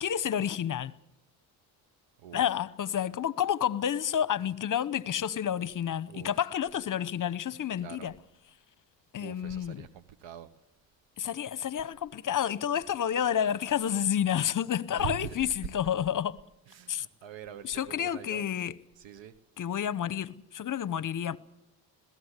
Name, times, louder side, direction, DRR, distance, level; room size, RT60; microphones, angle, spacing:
voice 1, 0.0-0.9 2.3-8.1 9.1-9.8 11.2-16.4 16.9-17.1 17.6-18.7 19.6-21.4, left 9 dB, 40° left, 0.9 m, -30 dB
voice 2, 7.8-8.1 9.2-10.5 14.9-15.4 16.7-18.5 19.0-19.3, right 10 dB, 70° right, 1.2 m, -43 dB
21.5 x 16.5 x 8.2 m
cardioid pair, 80°, 46 cm